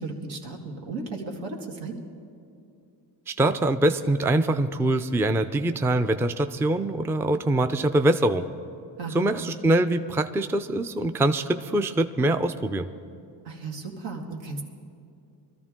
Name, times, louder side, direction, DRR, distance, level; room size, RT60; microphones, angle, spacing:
voice 1, 0.0-2.0 9.0-9.4 13.5-14.6, right 3 dB, 80° right, 0 dB, 1.9 m, -35 dB
voice 2, 3.3-8.5 9.1-12.9, right 1 dB, 5° right, 9 dB, 0.4 m, -24 dB
22.0 x 13.0 x 3.6 m, 2.5 s
cardioid pair, 85°, 44 cm